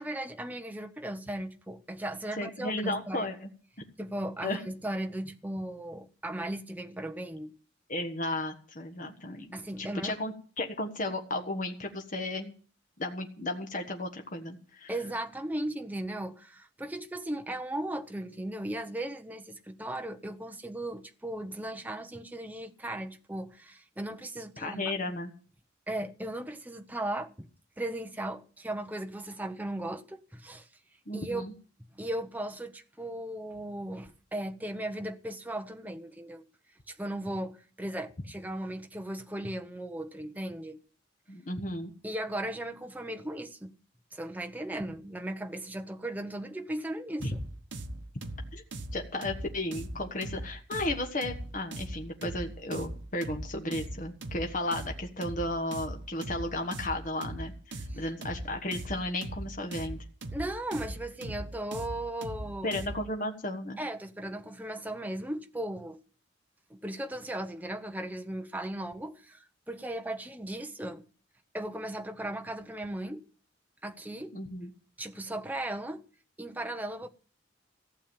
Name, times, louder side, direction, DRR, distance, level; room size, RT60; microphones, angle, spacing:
voice 1, 0.0-3.3 4.0-7.5 9.5-10.1 14.9-24.9 25.9-27.5 27.8-30.7 31.1-31.5 31.9-36.4 36.9-40.8 42.0-43.7 44.1-47.3 57.9-58.0 60.3-62.7 63.8-66.0 66.7-71.0 71.5-73.2 73.8-74.4 75.0-76.0 76.4-77.1, right 1 dB, 10° right, 0.8 m, -37 dB
voice 2, 2.4-3.5 4.4-4.6 7.9-9.5 9.8-12.5 13.0-14.9 24.6-25.3 31.1-31.5 41.3-41.9 47.2-47.3 48.5-48.6 48.9-60.0 62.6-63.8 74.3-74.7, left 1 dB, 40° left, 1.4 m, -34 dB
sound 1, 47.2-63.1, right 1 dB, 70° right, 1.2 m, -40 dB
15.0 x 7.3 x 8.8 m
head